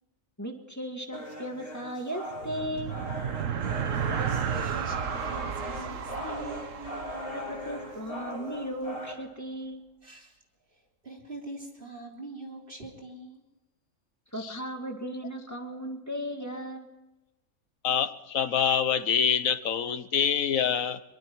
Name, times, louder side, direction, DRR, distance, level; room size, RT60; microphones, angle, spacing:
voice 1, 0.4-3.0 7.3-9.8 14.3-16.9, equal, 10° left, 3 dB, 2.0 m, -36 dB
sound 1, 1.1-9.1, equal, 45° left, 4.7 m, -39 dB
sound 2, 2.3-8.0, right 8 dB, 75° right, 1.3 m, -33 dB
voice 2, 4.2-6.7 10.0-10.4 10.7-13.4, right 2 dB, 40° right, 0 dB, 3.9 m, -44 dB
voice 3, 17.8-21.0, left 8 dB, 85° left, 12 dB, 1.5 m, -26 dB
24.0 x 23.0 x 4.7 m, 1.0 s
omnidirectional pair, 1.4 m